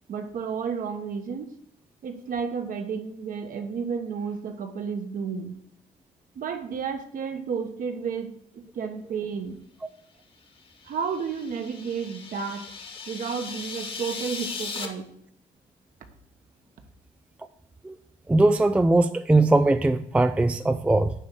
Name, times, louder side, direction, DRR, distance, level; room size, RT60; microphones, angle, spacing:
voice 1, 0.1-1.5 2.0-5.6 6.3-9.6 10.8-12.7 13.1-15.1, right 6 dB, 55° right, 6 dB, 1.3 m, -32 dB
sound 1, 10.7-14.9, left 5 dB, 30° left, 1.3 m, -38 dB
voice 2, 18.3-21.1, right 2 dB, 5° right, 10 dB, 0.3 m, -20 dB
9.8 x 3.5 x 6.9 m, 0.65 s
cardioid pair, 110°, 17 cm